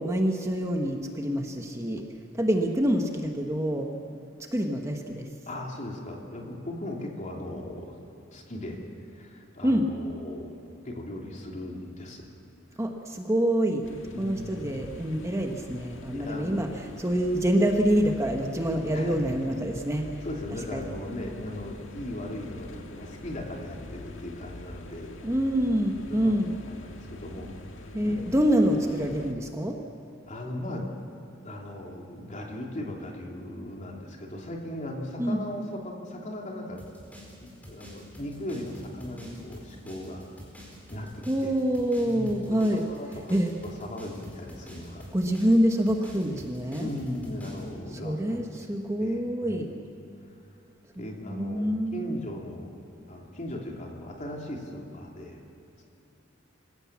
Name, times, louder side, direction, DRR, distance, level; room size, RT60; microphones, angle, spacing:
voice 1, 0.0-2.0 2.4-3.9 4.5-5.3 9.6-9.9 12.8-13.9 14.2-16.7 17.0-20.1 20.7-20.8 25.2-26.5 27.9-29.8 35.2-35.4 41.3-42.8 43.3-43.5 45.1-46.9 48.0-49.7 51.0-51.1 51.3-52.2, equal, 15° right, 3 dB, 1.2 m, -26 dB
voice 2, 5.5-8.0 8.3-8.8 9.1-10.5 10.8-12.3 12.7-12.8 14.1-14.8 16.1-17.0 18.9-19.2 20.2-25.2 25.6-25.8 26.1-28.1 30.2-30.9 31.4-36.8 37.4-40.4 40.9-41.5 42.0-43.4 43.6-45.1 46.8-48.4 49.0-50.0 50.9-52.7 53.1-55.4 55.8-55.9, left 1 dB, 40° left, 0 dB, 3.0 m, -38 dB
sound 1, 13.8-29.3, left 1 dB, 85° left, 1.7 m, -44 dB
sound 2, 36.8-47.7, equal, 10° left, 4.7 m, -47 dB
26.0 x 16.5 x 7.4 m, 2.9 s
head